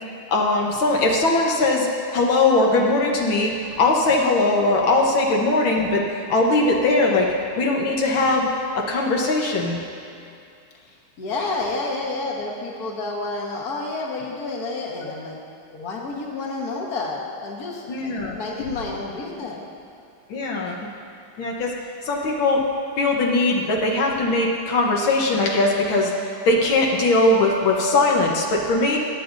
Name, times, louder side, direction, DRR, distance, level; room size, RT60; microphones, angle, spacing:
voice 1, 0.3-1.9 2.1-3.5 3.8-6.0 6.3-7.3 7.6-8.5 8.8-9.8 17.9-18.7 20.3-20.8 21.4-21.7 22.1-22.6 23.0-29.0, left 2 dB, 80° left, -1 dB, 1.8 m, -20 dB
voice 2, 10.8-15.4 15.7-17.9 18.3-19.6, left 3 dB, 50° left, -2 dB, 1.9 m, -30 dB
21.5 x 9.7 x 2.6 m, 2.5 s
omnidirectional pair, 2.1 m